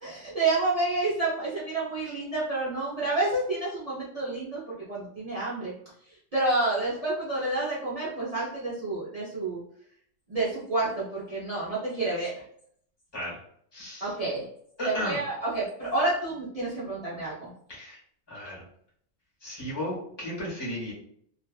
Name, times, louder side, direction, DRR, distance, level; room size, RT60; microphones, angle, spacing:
voice 1, 0.0-5.7 6.3-9.6 10.3-12.3 14.0-14.5 14.8-17.5, right 2 dB, 35° right, -7 dB, 0.6 m, -29 dB
voice 2, 13.7-14.1 14.8-15.2 17.7-18.0 18.3-18.6 19.4-20.9, left 1 dB, 20° left, -5 dB, 1.0 m, -34 dB
2.5 x 2.3 x 2.3 m, 0.65 s
omnidirectional pair, 1.4 m